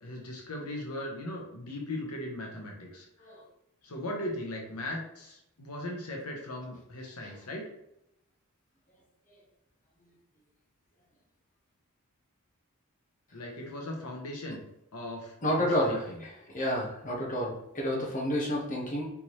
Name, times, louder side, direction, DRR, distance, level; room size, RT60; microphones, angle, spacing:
voice 1, 0.0-3.3 3.8-7.7 13.3-14.6 14.9-16.2, left 1 dB, 85° left, 0 dB, 0.9 m, -38 dB
voice 2, 15.4-19.1, equal, 35° left, -3 dB, 1.1 m, -30 dB
4.1 x 3.5 x 3.1 m, 0.82 s
head